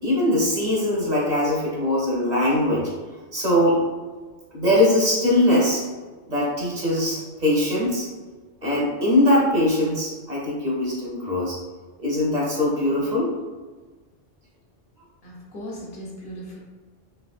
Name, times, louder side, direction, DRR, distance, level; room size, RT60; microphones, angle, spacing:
voice 1, 0.0-2.9 3.3-3.8 4.5-5.8 6.3-8.1 8.6-11.6 12.0-13.3, left 1 dB, 40° right, -5 dB, 1.0 m, -21 dB
voice 2, 15.2-16.6, equal, 60° left, -3 dB, 1.1 m, -37 dB
3.5 x 3.0 x 2.4 m, 1.3 s
omnidirectional pair, 1.2 m